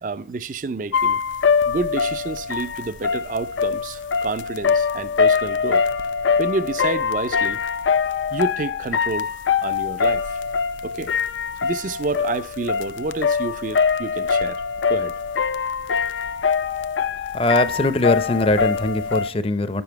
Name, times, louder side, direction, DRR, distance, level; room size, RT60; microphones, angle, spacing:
voice 1, 0.0-1.2 1.7-5.8 6.4-7.6 8.3-10.4 10.8-11.1 11.6-14.6 14.9-15.2, right 3 dB, 45° right, 0.4 m, -29 dB
sound 1, 0.9-19.3, left 6 dB, 85° left, 0.5 m, -23 dB
voice 2, 17.3-19.8, left 2 dB, 30° left, 0.5 m, -21 dB
11.0 x 7.0 x 4.5 m
head